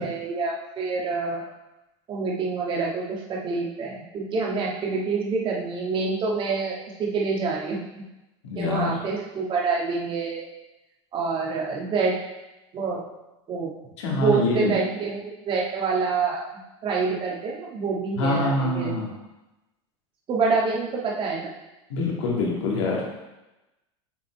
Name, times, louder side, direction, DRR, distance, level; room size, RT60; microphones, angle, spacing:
voice 1, 0.0-1.4 2.1-7.8 8.6-10.5 11.1-12.2 12.7-13.0 13.5-13.7 14.1-16.4 16.8-18.9 20.3-21.5, right 4 dB, 35° right, -3 dB, 1.7 m, -27 dB
voice 2, 8.4-8.9 14.0-14.8 18.2-19.1 21.9-23.0, left 2 dB, 85° left, -2 dB, 2.1 m, -25 dB
7.3 x 4.1 x 4.6 m, 1.0 s
supercardioid pair, 120°, 14 cm